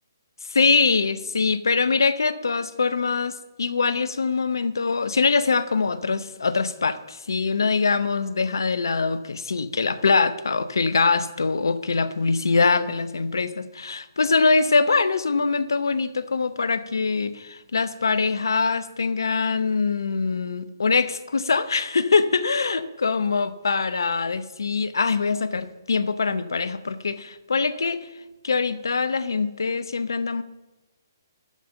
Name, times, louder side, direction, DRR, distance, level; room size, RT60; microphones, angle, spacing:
voice 1, 0.5-28.0 28.4-30.4, left 4 dB, 80° left, 14 dB, 0.8 m, -23 dB
13.0 x 5.3 x 8.7 m, 1.1 s
hypercardioid pair, 145°, 2 cm